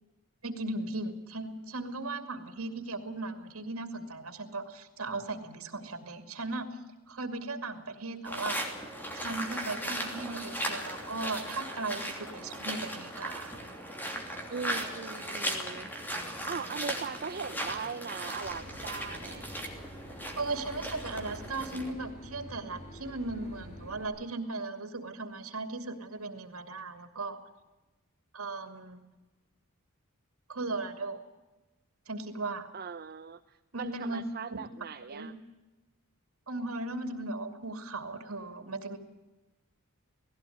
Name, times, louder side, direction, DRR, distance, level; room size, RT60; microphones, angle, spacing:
voice 1, 0.4-6.8 7.1-8.6 9.1-13.5 20.4-27.4 28.3-29.0 30.5-31.2 32.1-32.7 33.7-34.2 35.1-35.3 36.5-39.0, right 2 dB, 90° right, 7 dB, 2.6 m, -37 dB
sound 1, 8.2-21.9, equal, 10° left, 3.0 m, -37 dB
voice 2, 14.5-19.5 32.7-35.3, right 5 dB, 45° right, 7 dB, 0.7 m, -40 dB
Boat Water vehicle / Engine, 18.4-24.1, equal, 35° left, 5.6 m, -48 dB
18.5 x 16.5 x 9.4 m, 1.1 s
head